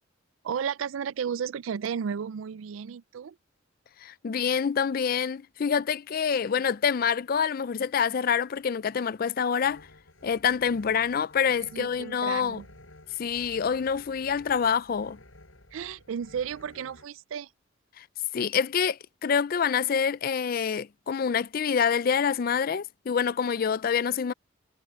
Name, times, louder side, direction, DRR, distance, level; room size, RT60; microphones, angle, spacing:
voice 1, 0.4-3.4 11.6-12.7 15.7-17.5, right 7 dB, 75° right, 0.4 m, -33 dB
voice 2, 4.0-9.8 10.2-12.6 13.2-15.2 18.0-18.1 18.3-24.3, left 7 dB, 45° left, 0.4 m, -26 dB
sound 1, 9.6-17.0, left 1 dB, 75° left, 7.1 m, -53 dB
head